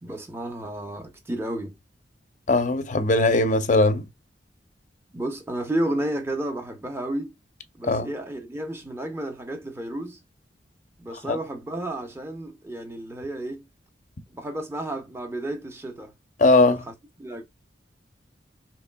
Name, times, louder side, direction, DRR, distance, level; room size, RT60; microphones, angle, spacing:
voice 1, 0.0-1.8 5.1-7.3 7.7-10.2 11.0-13.6 14.3-16.1 16.6-17.4, right 1 dB, 15° right, 0.7 m, -32 dB
voice 2, 2.5-4.0 7.9-8.1 11.3-11.4 16.4-16.8, left 2 dB, 45° left, 0.5 m, -19 dB
4.2 x 3.1 x 2.2 m
head